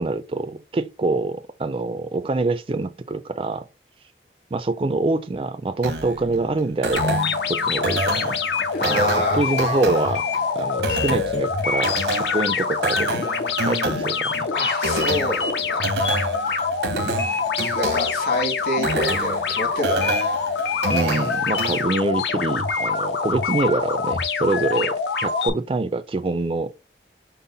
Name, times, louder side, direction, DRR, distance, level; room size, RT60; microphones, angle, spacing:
voice 1, 0.0-3.7 4.5-7.2 7.5-8.4 8.8-10.2 10.5-13.2 13.6-14.5 20.9-24.9 25.2-26.7, right 3 dB, 30° right, 0.3 m, -25 dB
sound 1, 5.8-21.8, right 2 dB, 80° right, 0.9 m, -29 dB
sound 2, 6.9-25.5, left 5 dB, 80° left, 0.7 m, -25 dB
voice 2, 8.7-9.4 14.5-16.1 17.7-20.1, left 1 dB, 60° left, 1.8 m, -26 dB
5.5 x 2.1 x 3.9 m
head